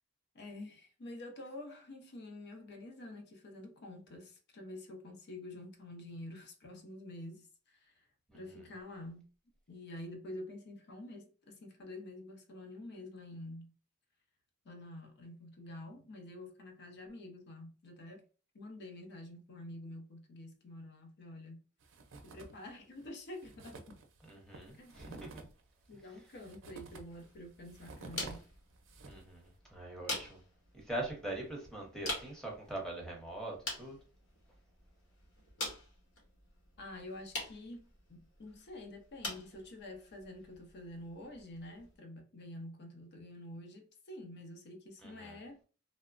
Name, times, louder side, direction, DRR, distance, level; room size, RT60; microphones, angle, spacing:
voice 1, 0.3-8.1 8.3-9.3 9.7-13.7 14.6-18.2 18.5-21.6 22.2-24.0 24.8-25.1 25.9-28.4 36.8-45.6, left 1 dB, 50° left, 0.6 m, -48 dB
sound 1, 21.8-22.7 23.0-23.1 23.3-29.4, right 3 dB, 60° right, 0.5 m, -51 dB
voice 2, 24.2-25.5 29.1-30.4 30.7-34.0 45.0-45.4, right 1 dB, 5° left, 0.8 m, -43 dB
sound 2, 26.9-42.0, left 1 dB, 75° left, 1.1 m, -46 dB
3.1 x 2.1 x 2.4 m
head